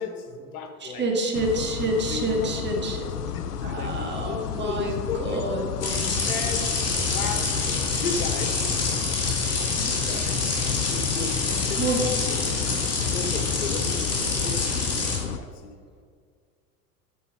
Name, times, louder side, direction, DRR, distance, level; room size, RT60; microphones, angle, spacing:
voice 1, 0.0-1.1 2.1-5.5 5.8-7.5 7.9-8.6 9.8-10.4 10.9-12.6 13.0-15.7, left 5 dB, 65° left, 6 dB, 1.3 m, -35 dB
voice 2, 0.8-3.0 3.6-5.6 11.8-12.0, right 2 dB, 25° right, 0 dB, 1.8 m, -27 dB
sound 1, 1.3-15.4, left 9 dB, 85° left, 0.5 m, -32 dB
sound 2, 5.8-15.2, left 3 dB, 30° left, 2.7 m, -27 dB
12.0 x 4.7 x 5.4 m, 2.1 s
figure-of-eight pair, 75°, 46 cm